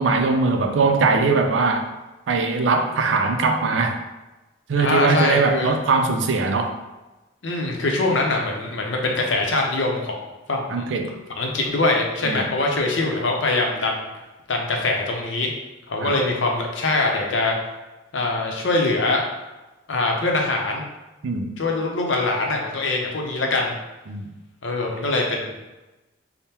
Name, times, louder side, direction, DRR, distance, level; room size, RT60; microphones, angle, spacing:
voice 1, 0.0-1.9 2.3-4.0 4.7-6.8 10.7-11.1 11.6-11.8 12.2-12.5 16.0-16.2 21.2-21.5 24.1-24.3, right 4 dB, 85° right, 5 dB, 0.5 m, -21 dB
voice 2, 4.8-5.7 7.4-10.2 10.5-10.9 11.4-14.0 14.5-15.5 15.9-17.5 18.1-19.2 19.9-20.8 21.6-23.7 24.6-25.5, left 2 dB, 90° left, 1 dB, 0.7 m, -23 dB
3.6 x 2.1 x 4.2 m, 1.1 s
head